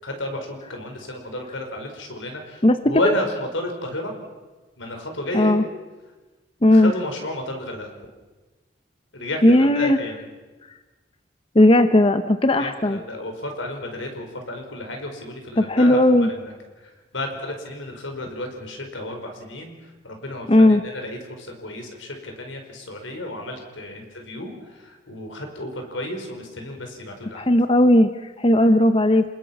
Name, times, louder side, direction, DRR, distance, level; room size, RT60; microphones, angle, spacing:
voice 1, 0.0-2.6 2.9-4.1 4.8-5.6 6.7-7.9 9.1-10.2 12.6-16.5 17.1-19.7 20.0-24.5 24.8-27.5, left 1 dB, 85° left, 4 dB, 5.0 m, -32 dB
voice 2, 5.3-5.6 6.6-6.9 9.4-10.0 11.5-13.0 15.6-16.3 20.5-20.8 27.3-28.1 28.4-29.2, left 1 dB, 30° left, 10 dB, 0.8 m, -16 dB
28.0 x 20.5 x 6.0 m, 1.2 s
head